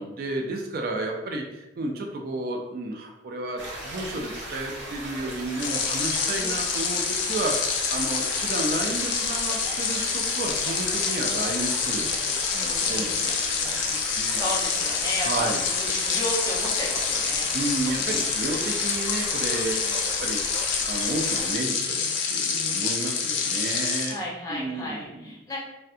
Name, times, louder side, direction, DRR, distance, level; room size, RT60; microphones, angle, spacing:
voice 1, 0.0-14.4 15.2-15.6 17.3-19.7 20.0-24.2 24.5-25.4, right 2 dB, 50° right, 2 dB, 0.3 m, -32 dB
sound 1, 3.6-21.5, right 1 dB, 80° right, 0.7 m, -37 dB
sound 2, 5.5-24.2, left 6 dB, 75° left, 0.4 m, -27 dB
voice 2, 12.8-13.7 14.3-17.5 19.5-20.0 24.1-25.6, equal, 20° left, -6 dB, 0.6 m, -34 dB
2.6 x 2.2 x 2.4 m, 0.97 s
head